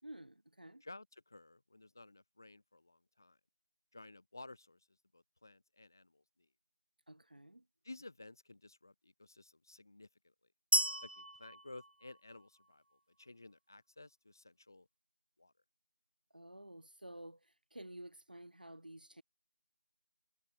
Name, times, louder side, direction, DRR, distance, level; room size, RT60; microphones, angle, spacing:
voice 1, 0.0-0.8 7.1-7.6 16.3-19.2, right 1 dB, 55° right, 5.1 m, -52 dB
voice 2, 0.8-3.4 3.9-4.9 5.1-6.5 7.8-10.3 11.0-12.8 13.2-14.9 15.4-15.5, left 2 dB, 20° left, 6.1 m, -55 dB
sound 1, 10.7-12.7, right 1 dB, 70° right, 0.7 m, -35 dB
figure-of-eight pair, 180°, 6 cm